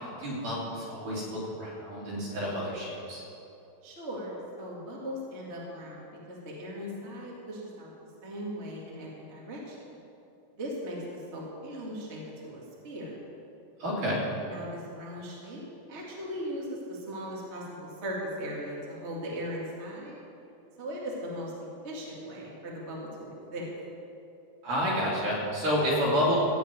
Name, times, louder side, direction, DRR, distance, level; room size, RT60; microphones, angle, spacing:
voice 1, 0.0-3.2 13.8-14.2 24.6-26.4, equal, 65° right, -6 dB, 4.6 m, -29 dB
voice 2, 3.8-7.9 8.2-9.8 10.6-13.1 14.4-15.6 15.9-20.2 20.8-23.7, equal, 25° right, -4 dB, 1.7 m, -38 dB
15.5 x 5.4 x 9.1 m, 2.7 s
omnidirectional pair, 4.1 m